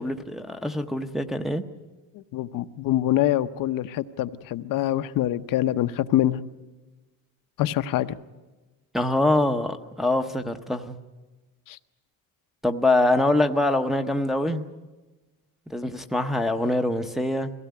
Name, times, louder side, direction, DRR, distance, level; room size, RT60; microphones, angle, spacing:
voice 1, 0.0-1.6 8.9-11.0 12.6-14.6 15.7-17.5, left 1 dB, ahead, 0.8 m, -24 dB
voice 2, 2.1-6.4 7.6-8.2 11.7-11.8, left 13 dB, 65° left, 0.8 m, -25 dB
22.0 x 16.5 x 9.4 m
cardioid pair, 140°, 36 cm